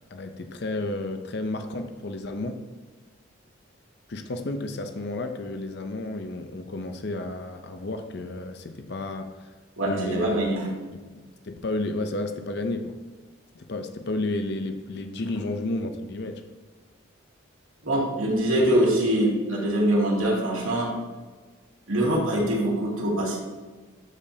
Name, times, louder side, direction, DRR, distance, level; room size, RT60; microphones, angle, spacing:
voice 1, 0.1-2.6 4.1-9.5 9.9-10.4 10.9-11.0 11.4-13.0 13.5-16.4, left 2 dB, 55° left, 7 dB, 0.6 m, -32 dB
voice 2, 9.8-10.7 17.8-20.9 21.9-23.4, right 1 dB, 85° right, -4 dB, 2.4 m, -23 dB
11.5 x 5.3 x 2.8 m, 1.4 s
head